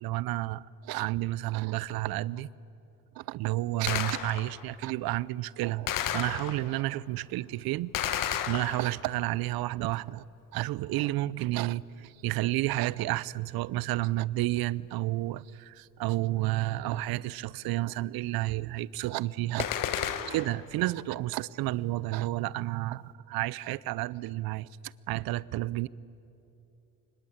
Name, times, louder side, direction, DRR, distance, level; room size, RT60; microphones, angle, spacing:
voice 1, 0.0-2.5 3.2-5.9 6.1-10.2 10.5-19.7 20.0-25.9, right 17 dB, 70° right, 0.6 m, -31 dB
Gunshot gunfire, 3.9-4.7 5.9-6.8 7.9-9.2 19.6-20.7, left 10 dB, 60° left, 1.2 m, -32 dB
24.5 x 21.0 x 8.7 m
cardioid pair, 105°, 37 cm